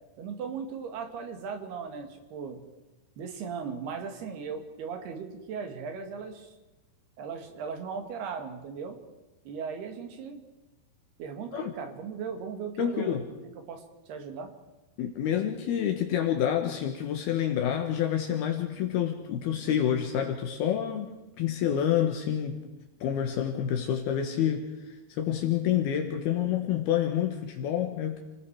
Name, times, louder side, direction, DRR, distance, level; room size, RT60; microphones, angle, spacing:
voice 1, 0.2-2.6 3.2-6.5 7.2-9.0 9.5-10.4 11.2-13.2 13.7-14.5, right 6 dB, 75° right, 5 dB, 4.0 m, -37 dB
voice 2, 12.8-13.2 15.0-22.6 23.0-28.2, left 9 dB, 75° left, 3 dB, 3.2 m, -28 dB
29.5 x 19.0 x 4.7 m, 1.1 s
omnidirectional pair, 4.6 m